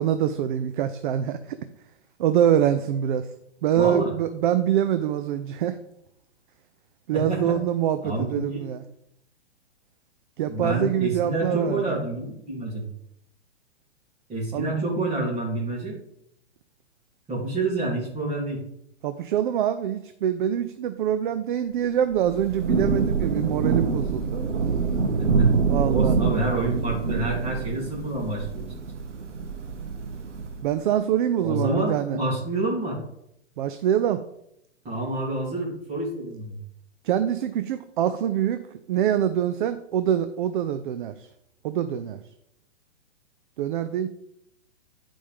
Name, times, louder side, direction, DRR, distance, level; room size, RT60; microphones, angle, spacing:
voice 1, 0.0-1.6 2.2-3.3 3.6-5.8 7.1-8.8 10.4-11.8 14.5-14.7 19.0-24.4 25.7-26.2 30.6-32.2 33.6-34.2 37.0-41.3 41.6-42.2 43.6-44.1, right 10 dB, 45° right, 11 dB, 0.5 m, -25 dB
voice 2, 3.7-4.1 7.1-7.6 8.0-8.6 10.5-12.9 14.3-16.0 17.3-18.6 25.2-25.5 25.8-28.6 31.4-33.0 34.8-36.6, right 2 dB, 20° right, -4 dB, 3.1 m, -28 dB
Thunder / Rain, 22.1-30.7, right 5 dB, 80° right, 1.2 m, -25 dB
10.5 x 5.1 x 3.6 m, 0.77 s
hypercardioid pair, 125°, 35 cm